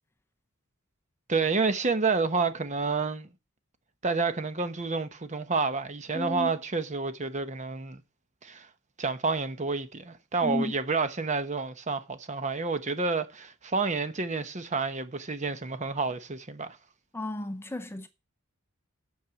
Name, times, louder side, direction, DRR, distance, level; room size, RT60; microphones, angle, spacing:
voice 1, 1.3-3.3 4.0-8.0 8.4-8.7 9.0-16.8, right 4 dB, 35° right, 0.9 m, -29 dB
voice 2, 6.1-6.5 10.4-10.7 17.1-18.1, left 1 dB, 10° left, 0.7 m, -32 dB
8.7 x 6.6 x 7.8 m
head